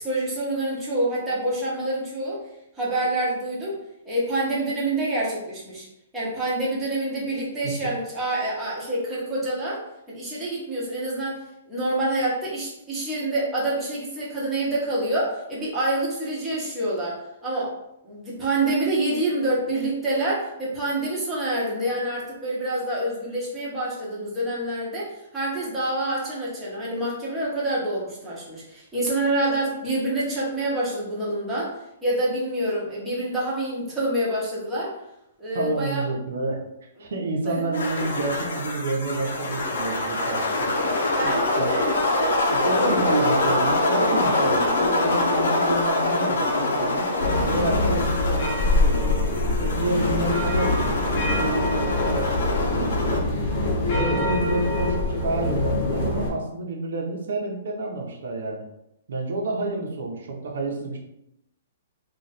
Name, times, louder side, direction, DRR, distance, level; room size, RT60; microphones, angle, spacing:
voice 1, 0.0-2.4 2.8-3.8 4.0-5.9 6.1-9.8 10.1-11.4 11.7-17.7 18.0-31.7 32.0-34.9 35.4-36.0 37.0-37.1 37.4-37.5 41.2-41.9, right 1 dB, 5° right, -8 dB, 1.0 m, -27 dB
voice 2, 35.5-36.6 37.0-40.7 41.2-41.8 42.5-47.1 47.4-49.2 49.6-53.2 53.9-58.6 59.1-61.0, right 2 dB, 75° right, 0 dB, 0.9 m, -29 dB
sound 1, 37.7-53.2, left 2 dB, 75° left, 0.7 m, -25 dB
sound 2, 47.2-56.3, left 2 dB, 30° left, 1.0 m, -24 dB
3.1 x 2.5 x 4.0 m, 0.83 s
hypercardioid pair, 170°, 0 cm